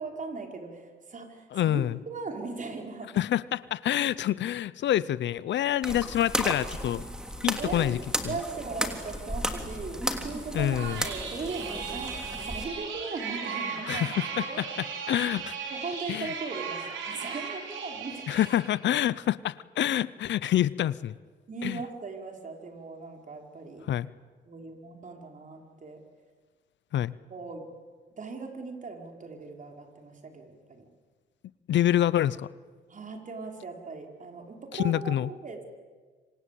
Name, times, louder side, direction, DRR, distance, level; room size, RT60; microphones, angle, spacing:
voice 1, 0.0-3.2 7.6-14.6 15.7-18.4 21.5-23.9 24.5-26.0 27.3-27.7 28.2-30.9 32.9-35.6, right 4 dB, 40° right, 3 dB, 5.0 m, -39 dB
voice 2, 1.5-2.0 3.2-7.0 7.4-8.0 10.5-11.0 13.9-14.4 15.1-15.6 16.1-16.3 18.3-21.1 21.6-21.8 23.9-24.1 26.9-27.1 31.7-32.5 34.7-35.3, left 12 dB, 65° left, 19 dB, 0.7 m, -26 dB
sound 1, 5.8-12.6, equal, 5° right, 3.1 m, -34 dB
sound 2, 10.7-18.8, right 6 dB, 75° right, 5.1 m, -37 dB
26.5 x 26.0 x 8.5 m, 1.4 s
cardioid pair, 90°, 20 cm